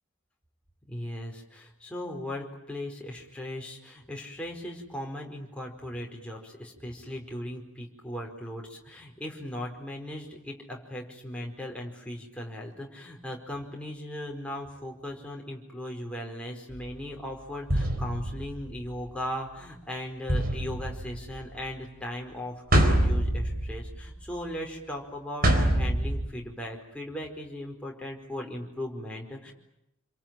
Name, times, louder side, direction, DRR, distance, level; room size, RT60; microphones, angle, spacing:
voice 1, 0.9-29.5, left 1 dB, 5° left, -1 dB, 4.7 m, -38 dB
sound 1, 16.7-17.0 17.7-19.1 20.3-21.7 22.7-24.2 25.4-26.3, right 1 dB, 45° right, 4.1 m, -26 dB
28.5 x 23.0 x 9.1 m, 0.84 s
head